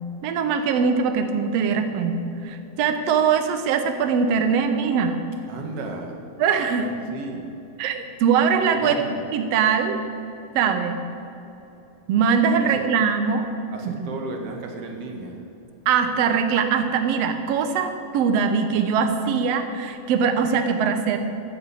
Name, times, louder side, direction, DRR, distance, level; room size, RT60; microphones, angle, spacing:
voice 1, 0.2-2.2 2.4-5.2 6.4-6.9 7.8-8.9 9.3-10.0 10.5-11.0 12.1-13.5 13.8-14.1 15.9-21.2, right 6 dB, 90° right, 7 dB, 1.4 m, -22 dB
voice 2, 5.5-6.2 6.8-7.5 8.7-9.2 12.6-12.8 13.7-15.4, right 3 dB, 50° right, 2 dB, 2.3 m, -34 dB
14.0 x 10.0 x 8.4 m, 2.8 s
omnidirectional pair, 4.2 m